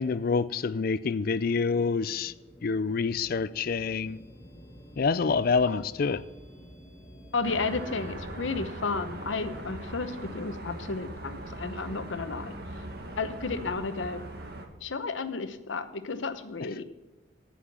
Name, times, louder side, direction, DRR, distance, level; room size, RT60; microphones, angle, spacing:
voice 1, 0.0-2.3 2.6-4.2 5.0-6.2, left 4 dB, 50° left, 0.4 m, -27 dB
sound 1, 1.4-8.1, equal, 15° left, 2.6 m, -50 dB
voice 2, 7.3-12.5 13.2-14.2 14.8-16.8, left 4 dB, 85° left, 0.9 m, -32 dB
sound 2, 7.4-14.7, right 1 dB, 55° right, 1.6 m, -40 dB
14.5 x 5.8 x 5.9 m
head